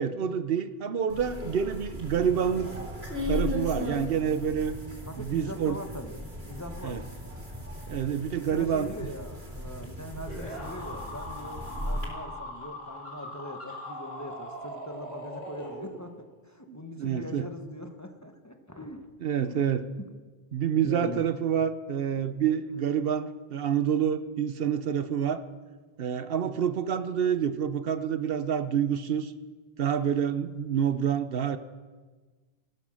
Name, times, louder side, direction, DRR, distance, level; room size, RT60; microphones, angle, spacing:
voice 1, 0.0-2.7 3.2-4.8 5.2-5.8 6.8-7.0 7.9-8.9 16.7-17.5 19.2-19.9 20.5-25.4 26.0-29.3 29.8-31.6, right 8 dB, 70° right, 12 dB, 0.9 m, -28 dB
sound 1, 1.1-12.1, left 1 dB, 90° right, 4.0 m, -37 dB
voice 2, 5.1-7.0 8.5-19.1 19.4-19.6 20.8-21.3 26.1-26.4, left 1 dB, 15° left, 5 dB, 1.1 m, -42 dB
sound 2, 10.3-16.3, left 1 dB, 45° left, 2.6 m, -40 dB
15.5 x 13.5 x 6.3 m, 1.4 s
omnidirectional pair, 1.0 m